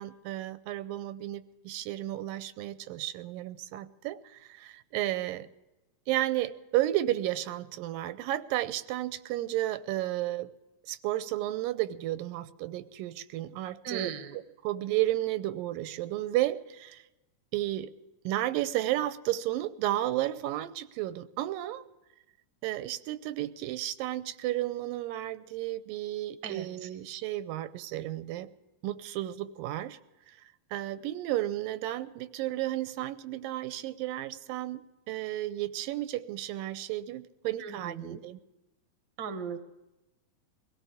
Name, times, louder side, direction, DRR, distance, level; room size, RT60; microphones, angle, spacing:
voice 1, 0.0-5.5 6.1-10.5 10.8-17.0 17.5-17.9 18.3-21.8 22.6-28.5 28.8-30.0 30.7-34.8 35.1-38.4, right 14 dB, 90° right, 13 dB, 2.4 m, -32 dB
voice 2, 13.8-14.4 26.4-26.9 37.6-38.2 39.2-39.6, right 7 dB, 55° right, 8 dB, 1.3 m, -38 dB
23.5 x 17.0 x 3.5 m, 1.0 s
omnidirectional pair, 3.9 m